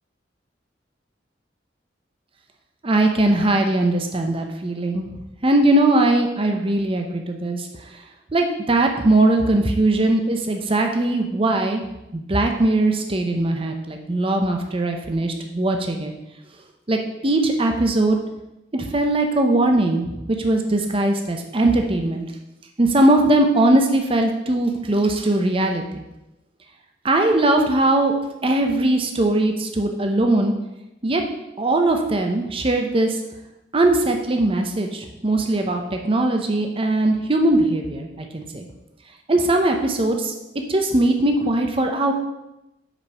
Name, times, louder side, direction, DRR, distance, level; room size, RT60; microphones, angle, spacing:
voice 1, 2.8-5.1 5.4-7.7 7.9-8.0 8.3-11.8 12.1-16.1 16.9-18.2 18.7-22.2 22.8-26.0 27.0-28.1 28.4-30.5 31.0-31.2 31.6-33.2 33.7-38.6 39.3-42.1, right 2 dB, 30° right, 3 dB, 0.7 m, -20 dB
5.2 x 5.0 x 6.5 m, 0.92 s
head